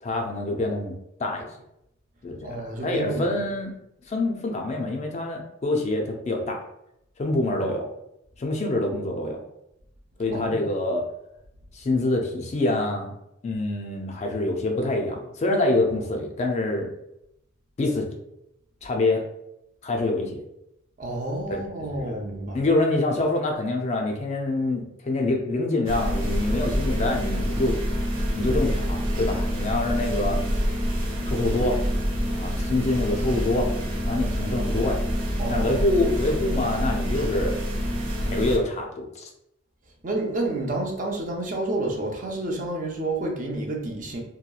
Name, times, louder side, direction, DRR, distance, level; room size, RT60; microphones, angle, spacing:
voice 1, 0.0-1.5 2.2-3.7 4.1-6.6 7.2-7.9 8.4-9.4 10.2-11.0 11.7-13.2 13.4-16.9 17.8-18.1 18.8-19.2 19.8-20.4 21.5-21.6 21.9-22.1 22.5-27.7 28.3-30.4 31.3-31.8 32.3-33.7 34.1-35.0 35.5-37.6 38.2-39.3, left 2 dB, 35° left, 2 dB, 0.3 m, -26 dB
voice 2, 2.4-3.4 10.3-10.6 21.0-22.6 35.4-35.8 40.0-44.2, right 2 dB, 40° right, 1 dB, 0.5 m, -29 dB
sound 1, 25.9-38.6, equal, 80° right, 0.7 m, -26 dB
2.8 x 2.2 x 2.3 m, 0.82 s
head